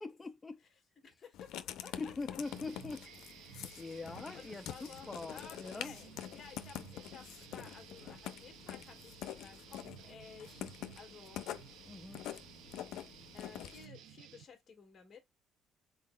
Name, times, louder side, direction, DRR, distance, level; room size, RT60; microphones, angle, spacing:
voice 1, 0.0-0.6 2.0-3.1 3.4-4.7 5.1-5.9 11.9-12.2, left 3 dB, 15° left, 0.5 m, -43 dB
voice 2, 0.7-2.1 2.7-2.8 4.3-11.5 13.3-15.2, left 6 dB, 30° left, 1.6 m, -55 dB
Writing, 1.3-13.9, left 11 dB, 80° left, 0.5 m, -46 dB
sound 1, 2.4-14.5, right 10 dB, 85° right, 0.5 m, -55 dB
sound 2, 3.0-7.1 7.5-7.6, right 2 dB, 20° right, 1.2 m, -68 dB
4.1 x 3.9 x 2.2 m
cardioid pair, 160°, 0 cm